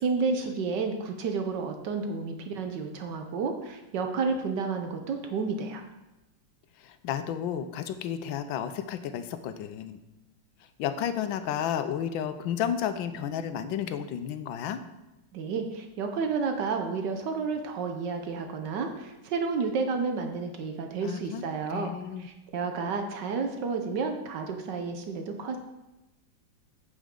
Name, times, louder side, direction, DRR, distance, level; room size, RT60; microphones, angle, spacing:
voice 1, 0.0-5.8 15.3-21.9 22.2-25.6, right 4 dB, 70° right, 5 dB, 1.4 m, -31 dB
voice 2, 6.8-10.0 10.8-14.8 21.0-22.3, left 9 dB, 90° left, 10 dB, 1.4 m, -32 dB
8.5 x 7.3 x 3.7 m, 0.99 s
omnidirectional pair, 2.0 m